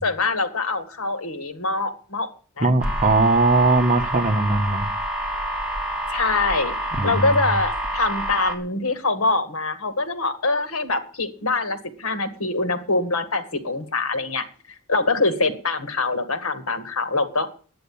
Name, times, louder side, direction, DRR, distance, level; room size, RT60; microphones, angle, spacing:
voice 1, 0.0-2.3 2.6-2.7 6.1-6.7 7.0-14.4 14.9-17.5, left 3 dB, 80° left, 9 dB, 1.9 m, -24 dB
voice 2, 2.6-4.9 6.9-7.3, right 3 dB, 35° right, 6 dB, 1.3 m, -19 dB
sound 1, 2.8-8.6, right 1 dB, 5° right, 2.5 m, -27 dB
10.5 x 9.2 x 8.7 m, 0.42 s
head